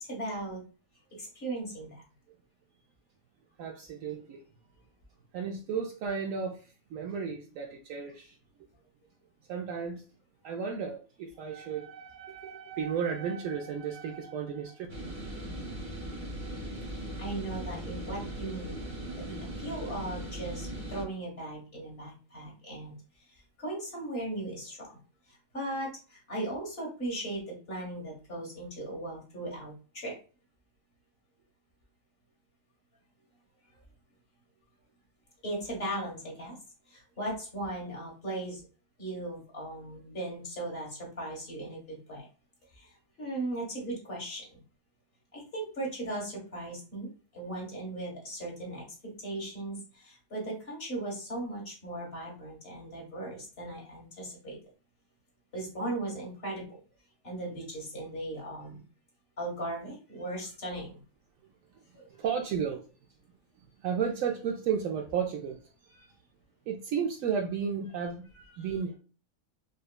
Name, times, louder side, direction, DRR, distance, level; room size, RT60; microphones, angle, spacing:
voice 1, 0.0-0.6 1.2-2.0 16.9-18.8 19.2-25.0 25.3-30.2 35.4-36.6 36.9-38.6 39.0-42.3 42.7-44.6 45.3-54.6 55.5-56.8 57.2-58.8 59.4-61.0 61.9-62.1 66.0-66.1 68.6-68.7, right 1 dB, 45° left, -2 dB, 1.8 m, -38 dB
voice 2, 3.6-4.4 5.3-6.6 6.9-8.3 9.5-10.0 10.4-14.9 62.2-62.8 63.8-65.6 66.7-68.3 68.6-69.0, right 7 dB, 75° right, 2 dB, 0.9 m, -33 dB
sound 1, 14.9-21.0, right 1 dB, 40° right, 1.0 m, -39 dB
5.0 x 2.2 x 2.2 m, 0.36 s
omnidirectional pair, 1.5 m